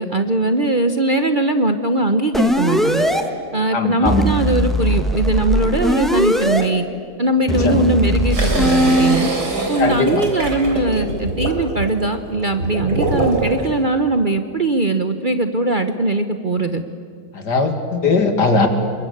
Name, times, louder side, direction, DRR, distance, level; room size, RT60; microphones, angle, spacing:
voice 1, 0.0-3.0 3.5-6.8 7.2-9.3 9.7-16.8, right 2 dB, 35° right, 8 dB, 0.9 m, -20 dB
sound 1, 2.3-3.2 4.1-6.6 7.5-9.2, equal, ahead, 1.4 m, -19 dB
voice 2, 3.7-4.3 7.6-7.8 9.8-10.2 17.3-18.7, left 4 dB, 70° left, 6 dB, 2.8 m, -19 dB
sound 2, 8.3-13.7, right 2 dB, 65° right, 4.3 m, -24 dB
27.0 x 22.5 x 8.6 m, 2.2 s
omnidirectional pair, 1.8 m